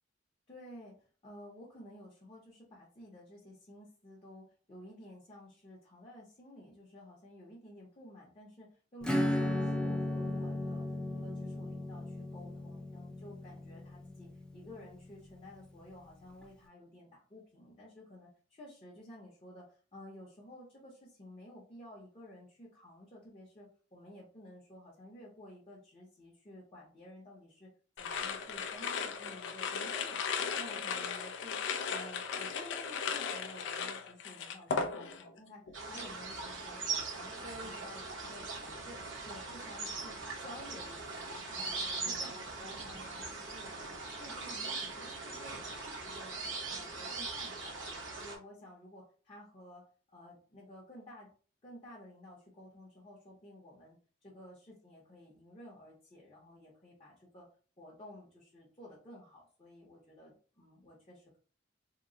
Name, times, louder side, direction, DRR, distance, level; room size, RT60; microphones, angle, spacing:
voice 1, 0.5-10.8 11.1-27.7 28.0-30.3 30.6-31.6 31.9-47.9 48.2-51.3 51.6-54.0 54.2-57.5 57.8-61.4, left 1 dB, 30° left, -6 dB, 0.8 m, -53 dB
Acoustic guitar / Strum, 9.0-15.3, left 1 dB, 5° left, 0.4 m, -35 dB
sound 1, 28.0-35.4 35.7-36.1, left 6 dB, 65° left, 0.4 m, -37 dB
sound 2, 35.7-48.4, right 3 dB, 80° right, 0.9 m, -40 dB
2.9 x 2.0 x 3.7 m, 0.41 s
head